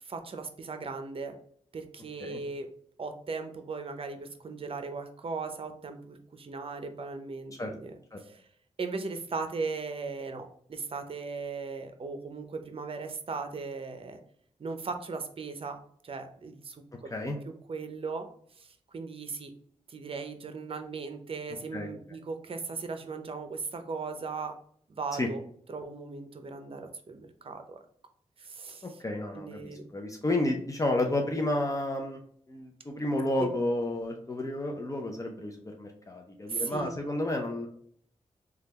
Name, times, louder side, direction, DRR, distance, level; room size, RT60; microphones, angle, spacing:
voice 1, 0.0-1.3 1.7-2.7 3.0-7.9 8.2-8.5 8.8-14.2 14.6-17.1 17.5-18.3 18.6-19.5 19.9-24.5 24.9-25.4 25.7-27.8 28.4-29.0 29.3-29.9 33.4-33.5 36.5-36.9, right 4 dB, 50° right, 7 dB, 0.6 m, -38 dB
voice 2, 28.8-32.2 32.5-37.7, left 1 dB, 25° left, 2 dB, 0.6 m, -31 dB
3.2 x 2.3 x 2.9 m, 0.63 s
cardioid pair, 55°, 12 cm